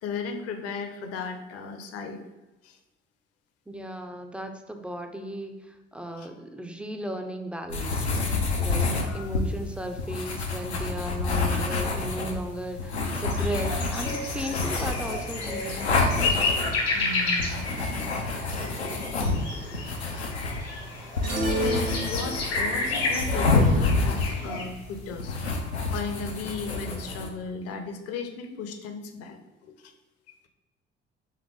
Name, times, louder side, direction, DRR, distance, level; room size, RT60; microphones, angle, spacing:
voice 1, 0.0-2.2 2.6-2.8 6.2-6.3 8.8-9.4 16.9-17.7 20.1-20.7 21.5-25.4 25.9-29.9, left 4 dB, 50° left, 6 dB, 0.6 m, -36 dB
voice 2, 3.7-8.1 8.5-15.9, right 1 dB, 5° right, 5 dB, 0.4 m, -36 dB
sound 1, 7.7-27.3, left 3 dB, 90° left, 0.5 m, -28 dB
sound 2, 13.3-24.6, left 3 dB, 70° left, 1.2 m, -31 dB
sound 3, 21.2-22.8, right 1 dB, 80° right, 0.7 m, -30 dB
3.5 x 3.3 x 3.5 m, 1.1 s
figure-of-eight pair, 50°, 32 cm